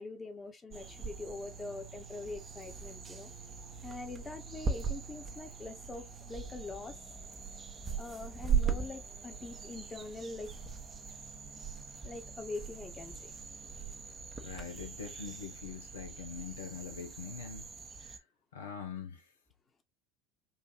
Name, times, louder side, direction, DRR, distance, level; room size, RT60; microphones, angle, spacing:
voice 1, 0.0-3.3 3.8-7.0 7.9-10.5 12.0-13.3, left 3 dB, 25° left, 1.1 m, -44 dB
sound 1, 0.7-18.2, right 6 dB, 35° right, 0.9 m, -40 dB
voice 2, 14.4-17.7 18.0-18.2 18.5-19.2, left 6 dB, 80° left, 0.8 m, -43 dB
4.1 x 2.6 x 2.5 m
hypercardioid pair, 70°, 0 cm